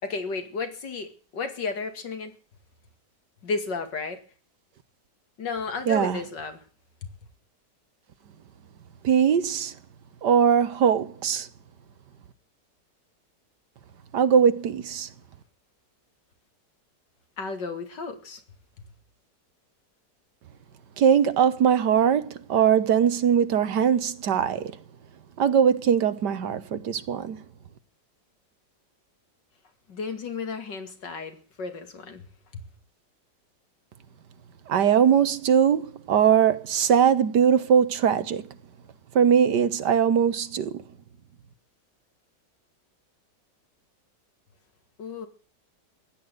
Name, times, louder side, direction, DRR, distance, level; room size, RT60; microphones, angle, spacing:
voice 1, 0.0-2.3 3.4-4.2 5.4-6.6 7.0-7.1 17.4-18.4 29.9-32.6 45.0-45.3, left 4 dB, 85° left, 2.8 m, -33 dB
voice 2, 5.9-6.2 9.0-9.7 10.2-11.5 14.1-15.1 21.0-24.7 25.4-27.4 34.7-38.4 39.2-40.8, right 8 dB, 75° right, 1.7 m, -21 dB
16.0 x 11.5 x 8.0 m
omnidirectional pair, 1.9 m